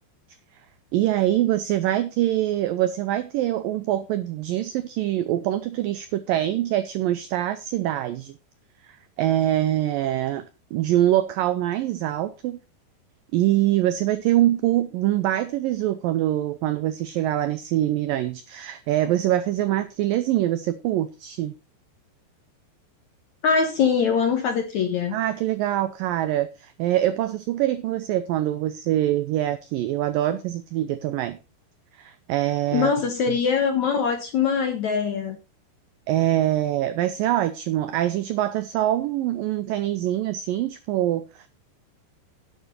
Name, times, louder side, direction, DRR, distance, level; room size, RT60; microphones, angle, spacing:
voice 1, 0.9-8.3 8.8-10.4 10.7-12.6 13.3-21.5 25.1-31.4 32.0-32.9 36.1-41.5, right 13 dB, 85° right, 12 dB, 1.9 m, -24 dB
voice 2, 23.4-25.2 32.7-35.4, left 6 dB, 65° left, 5 dB, 1.9 m, -22 dB
11.5 x 9.4 x 4.2 m, 0.30 s
omnidirectional pair, 4.9 m